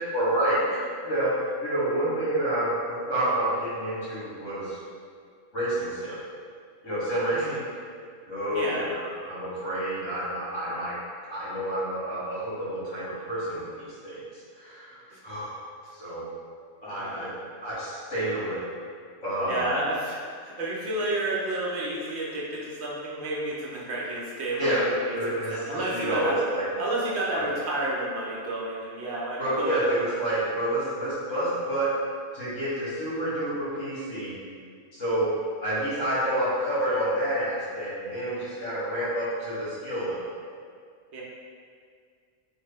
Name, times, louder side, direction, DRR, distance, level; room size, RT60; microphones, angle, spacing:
voice 1, 0.1-0.8 1.0-4.8 5.5-6.2 6.8-7.5 8.2-9.0 9.2-10.9 11.3-15.6 15.9-16.3 16.8-17.3 17.6-18.7 19.2-19.7 24.6-24.8 25.1-26.7 27.3-27.5 29.4-31.9 32.3-34.4 34.9-40.3, right 1 dB, 75° left, -10 dB, 1.7 m, -29 dB
voice 2, 8.5-8.9 15.1-15.2 16.9-17.4 19.4-26.4 26.8-29.9 41.1-41.2, right 1 dB, 60° right, -5 dB, 0.9 m, -31 dB
3.4 x 2.1 x 3.3 m, 2.1 s
omnidirectional pair, 1.3 m